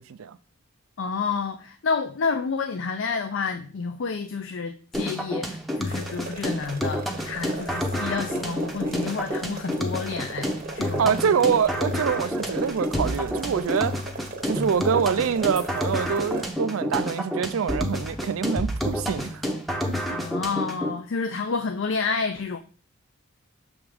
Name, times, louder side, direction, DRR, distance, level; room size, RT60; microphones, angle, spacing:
voice 1, 1.0-11.3 20.1-22.6, left 5 dB, 65° left, 0.4 m, -29 dB
sound 1, 4.9-20.9, equal, ahead, 0.6 m, -29 dB
sound 2, 5.8-16.5, right 3 dB, 45° right, 0.8 m, -39 dB
voice 2, 11.0-14.0 14.5-19.4 20.1-20.2, right 7 dB, 80° right, 0.4 m, -25 dB
6.2 x 3.5 x 4.9 m
head